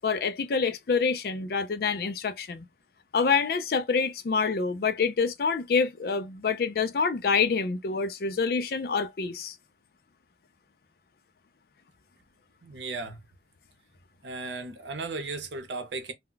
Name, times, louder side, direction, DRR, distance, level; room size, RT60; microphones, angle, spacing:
voice 1, 0.0-2.6 3.1-9.6, left 5 dB, 55° left, 0.4 m, -27 dB
voice 2, 12.6-13.2 14.2-16.1, right 3 dB, 80° right, 0.7 m, -35 dB
2.2 x 2.1 x 3.8 m
head